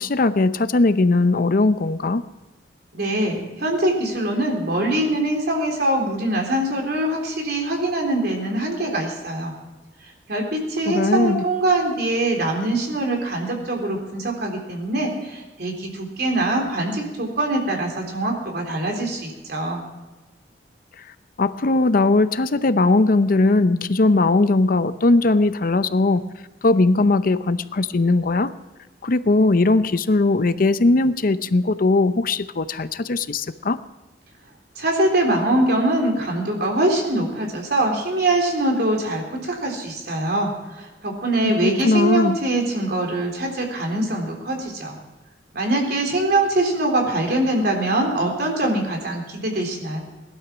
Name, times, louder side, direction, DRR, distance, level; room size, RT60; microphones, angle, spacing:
voice 1, 0.0-2.2 10.9-11.4 21.4-26.2 26.6-28.5 29.0-33.8 41.4-42.4, left 2 dB, 55° left, 13 dB, 0.7 m, -19 dB
voice 2, 2.9-9.5 10.3-19.8 34.8-40.5 40.8-45.0 45.5-50.0, right 1 dB, 65° right, 1 dB, 3.7 m, -23 dB
19.5 x 12.0 x 6.1 m, 1.2 s
head